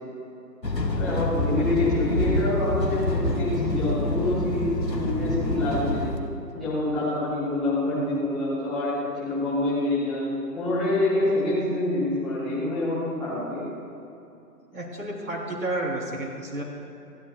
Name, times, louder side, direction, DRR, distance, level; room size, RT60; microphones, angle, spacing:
sound 1, 0.6-6.2, left 1 dB, 90° left, 1.4 m, -27 dB
voice 1, 0.9-6.1 6.5-10.3 10.5-13.7, left 2 dB, ahead, -15 dB, 0.9 m, -26 dB
voice 2, 14.7-16.6, right 1 dB, 55° right, -3 dB, 3.5 m, -31 dB
27.5 x 12.0 x 2.3 m, 2.8 s
figure-of-eight pair, 140°, 48 cm